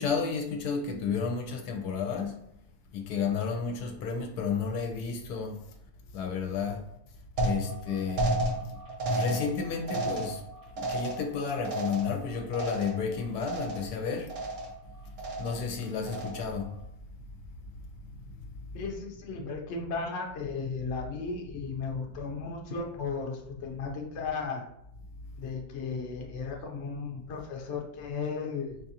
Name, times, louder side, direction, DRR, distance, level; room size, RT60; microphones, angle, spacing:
voice 1, 0.0-2.4 2.9-5.7 6.1-6.9 7.4-8.3 8.6-8.8 9.1-10.4 10.8-14.4 15.1-16.8 17.2-17.3 17.7-18.3 21.8-21.9, left 5 dB, 80° left, 1.1 m, -32 dB
sound 1, 7.4-13.1 13.4-14.0 14.3-14.9 15.2-15.7 16.1-16.6, right 1 dB, 50° right, 0.9 m, -33 dB
voice 2, 18.7-24.6 25.4-28.8, left 4 dB, 60° left, 0.8 m, -35 dB
4.8 x 2.4 x 2.7 m
omnidirectional pair, 1.7 m